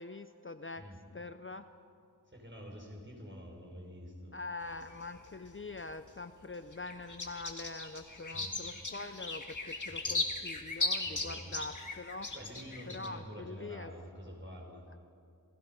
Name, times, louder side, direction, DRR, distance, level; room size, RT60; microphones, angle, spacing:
voice 1, 0.0-0.8 1.1-1.7 4.3-12.3 12.9-13.9, left 3 dB, 30° left, 9 dB, 0.6 m, -44 dB
voice 2, 2.3-4.3 8.3-8.5 9.9-10.2 11.0-11.6 12.3-14.9, equal, 30° right, 1 dB, 4.6 m, -47 dB
sound 1, 4.6-6.1 6.5-13.1, left 3 dB, 50° left, 2.1 m, -38 dB
28.0 x 17.0 x 5.5 m, 2.5 s
wide cardioid pair, 65°, 38 cm